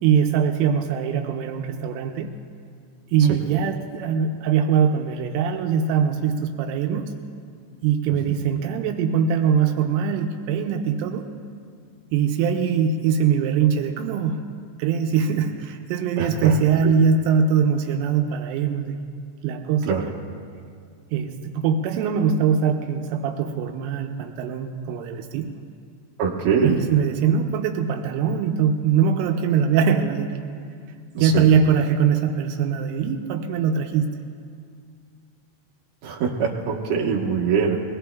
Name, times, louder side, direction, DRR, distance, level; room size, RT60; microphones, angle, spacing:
voice 1, 0.0-2.3 3.1-7.1 7.8-11.3 12.1-14.5 14.8-19.0 19.4-20.0 21.1-25.5 26.6-30.4 31.2-34.2, right 7 dB, 85° right, 4 dB, 3.1 m, -22 dB
voice 2, 16.2-16.5 19.9-20.0 26.2-26.8 31.2-31.4 36.0-37.8, right 6 dB, 65° right, -2 dB, 2.7 m, -23 dB
23.0 x 19.5 x 2.3 m, 2.2 s
omnidirectional pair, 5.7 m